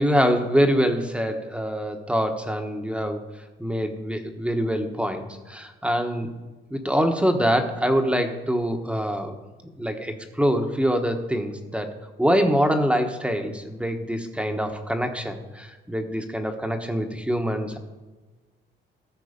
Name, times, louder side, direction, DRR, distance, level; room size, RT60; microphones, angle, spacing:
voice 1, 0.0-3.2 3.6-6.3 6.7-9.4 9.8-11.9 12.2-17.8, equal, 5° right, 5 dB, 1.1 m, -24 dB
14.0 x 6.2 x 5.2 m, 1.3 s
cardioid pair, 90°, 20 cm